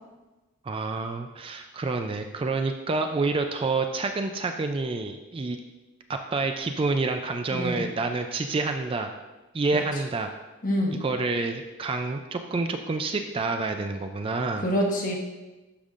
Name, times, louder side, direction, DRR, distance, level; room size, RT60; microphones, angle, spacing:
voice 1, 0.6-5.6 6.1-9.1 9.5-10.3 11.0-14.7, right 3 dB, 25° right, 6 dB, 0.3 m, -28 dB
voice 2, 7.5-7.9 9.7-9.8 10.6-11.0 14.6-15.1, equal, 40° left, -1 dB, 1.1 m, -26 dB
11.5 x 5.4 x 2.5 m, 1.1 s
head